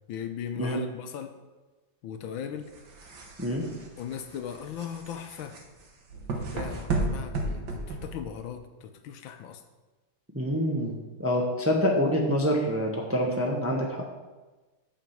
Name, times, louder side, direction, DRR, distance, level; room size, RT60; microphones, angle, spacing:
voice 1, 0.1-1.3 2.0-2.7 3.7-5.6 6.3-9.6, left 8 dB, 80° left, 7 dB, 1.5 m, -38 dB
sound 1, 2.6-8.5, right 2 dB, 60° right, 1.7 m, -34 dB
voice 2, 10.3-14.0, equal, 10° right, 0 dB, 0.8 m, -26 dB
9.1 x 5.0 x 7.2 m, 1.2 s
omnidirectional pair, 2.2 m